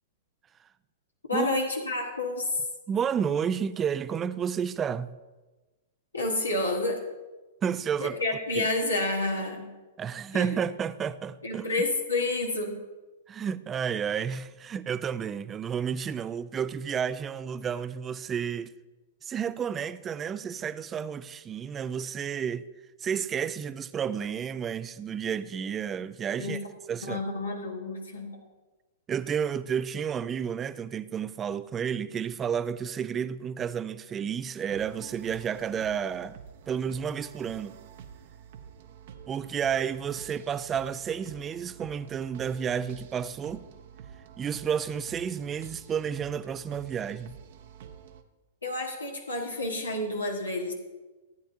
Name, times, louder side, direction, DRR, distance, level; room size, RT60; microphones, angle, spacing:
voice 1, 1.3-2.7 6.1-7.0 8.0-9.7 10.3-10.6 11.4-12.8 26.4-26.6 27.0-28.4 48.6-50.7, left 2 dB, 85° left, 1.4 m, -29 dB
voice 2, 2.9-5.2 7.6-8.2 8.6-8.7 10.0-11.6 13.3-18.7 19.2-22.7 23.0-26.6 26.9-27.2 29.1-36.4 36.7-37.7 39.3-43.7 44.4-47.4, right 7 dB, 20° right, 0.4 m, -31 dB
sound 1, 34.7-48.2, right 8 dB, 55° right, 0.8 m, -48 dB
15.0 x 9.0 x 2.7 m
figure-of-eight pair, 105°, 0 cm